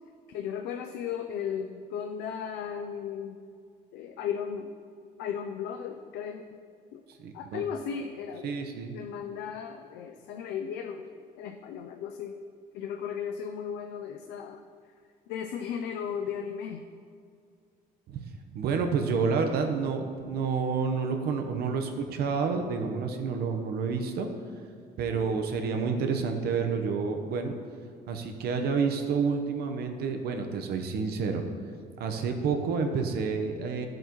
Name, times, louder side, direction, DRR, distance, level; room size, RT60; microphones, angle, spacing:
voice 1, 0.3-3.4 3.9-4.7 5.2-6.4 6.9-7.0 7.3-8.7 8.9-11.1 11.4-12.4 12.7-14.6 15.3-16.8 25.1-25.4, left 7 dB, 90° left, 5 dB, 0.5 m, -35 dB
voice 2, 7.2-7.6 8.4-8.9 18.1-18.2 18.5-24.3 25.0-27.6 28.1-31.4 32.0-33.9, right 5 dB, 70° right, 5 dB, 1.0 m, -29 dB
13.0 x 7.6 x 3.1 m, 2.3 s
cardioid pair, 110°, 17 cm